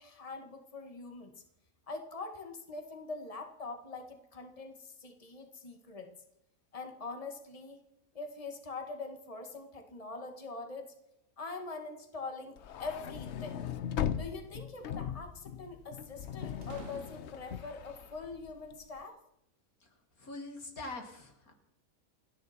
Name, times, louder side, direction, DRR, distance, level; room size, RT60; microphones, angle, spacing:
voice 1, 0.0-1.3 1.9-6.1 6.7-7.8 8.1-10.9 11.4-13.6 14.1-19.2, left 3 dB, 25° left, 5 dB, 1.9 m, -43 dB
sound 1, 12.6-18.9, left 9 dB, 60° left, 0.9 m, -39 dB
sound 2, 13.2-14.1 16.6-17.7, right 5 dB, 65° right, 1.7 m, -53 dB
voice 2, 20.2-21.5, left 2 dB, 85° left, 3 dB, 2.9 m, -43 dB
29.5 x 10.5 x 4.4 m, 0.84 s
omnidirectional pair, 1.5 m